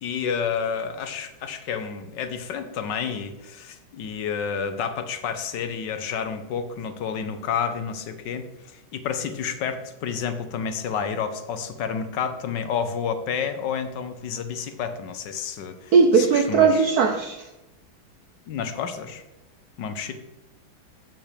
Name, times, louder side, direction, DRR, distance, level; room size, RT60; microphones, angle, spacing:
voice 1, 0.0-16.9 18.5-19.2 19.8-20.1, left 7 dB, 65° left, 1.3 m, -30 dB
voice 2, 15.9-17.5, right 5 dB, 75° right, 0.9 m, -18 dB
6.6 x 5.9 x 6.6 m
omnidirectional pair, 2.2 m